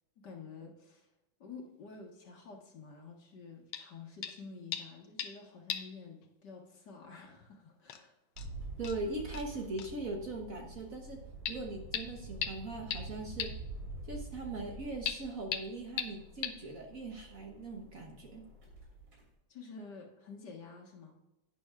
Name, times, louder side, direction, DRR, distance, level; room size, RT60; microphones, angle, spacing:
voice 1, 0.2-1.1 1.4-8.1 19.5-21.1, left 4 dB, 60° left, 1 dB, 2.2 m, -50 dB
sound 1, 3.7-3.9 4.2-4.4 4.7-5.4 5.7-6.0 6.2-6.3 7.4-7.5 7.9-8.0 8.4-8.5 8.8-9.0 9.3-9.5 9.8-9.9 11.5-11.6 11.9-12.0 12.4-12.5 12.9-13.0 13.4-13.5 15.1-15.2 15.5-15.6 16.0-16.1 16.4-16.5, left 9 dB, 85° left, 1.6 m, -36 dB
sound 2, 8.4-19.2, right 2 dB, 80° right, 3.9 m, -47 dB
voice 2, 8.8-11.2 11.5-13.5 14.0-18.4, right 2 dB, 50° right, 2 dB, 1.4 m, -40 dB
11.5 x 9.5 x 2.5 m, 0.94 s
omnidirectional pair, 2.2 m